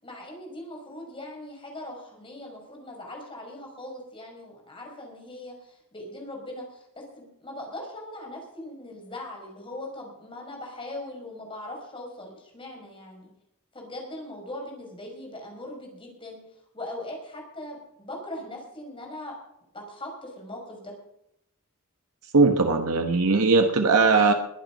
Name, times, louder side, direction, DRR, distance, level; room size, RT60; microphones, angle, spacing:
voice 1, 0.0-13.3 13.7-16.4 16.7-19.3 19.7-20.9, left 1 dB, 25° left, 1 dB, 5.6 m, -40 dB
voice 2, 22.3-24.3, right 4 dB, 85° right, 4 dB, 1.3 m, -19 dB
22.0 x 9.3 x 5.5 m, 0.79 s
head